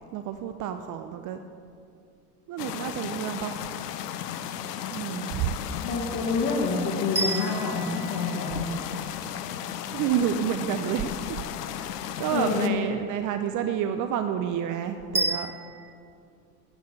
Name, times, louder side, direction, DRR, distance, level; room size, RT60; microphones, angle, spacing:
voice 1, 0.1-1.4 2.5-3.6 4.9-5.5 9.9-11.4 11.8-11.9 12.2-15.5, right 9 dB, 40° right, 8 dB, 0.6 m, -29 dB
sound 1, 2.6-12.7, left 10 dB, 90° left, 0.7 m, -35 dB
voice 2, 5.8-8.7 12.3-12.8, left 4 dB, 50° left, -3 dB, 1.9 m, -27 dB
sound 2, 7.1-9.3 15.1-15.9, right 3 dB, 5° right, 1.1 m, -31 dB
8.7 x 6.4 x 8.4 m, 2.3 s
hypercardioid pair, 100°, 46 cm